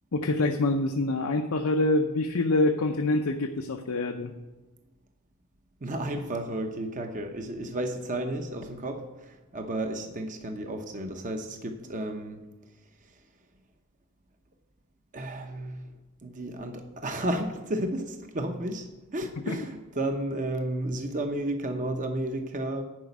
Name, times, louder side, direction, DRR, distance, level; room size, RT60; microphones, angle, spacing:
voice 1, 0.1-4.3 19.5-19.6, left 2 dB, 80° left, 4 dB, 0.7 m, -26 dB
voice 2, 5.8-12.4 13.0-13.2 15.1-15.8 16.2-22.8, right 1 dB, 35° right, 5 dB, 0.9 m, -32 dB
11.0 x 5.1 x 8.1 m, 1.1 s
head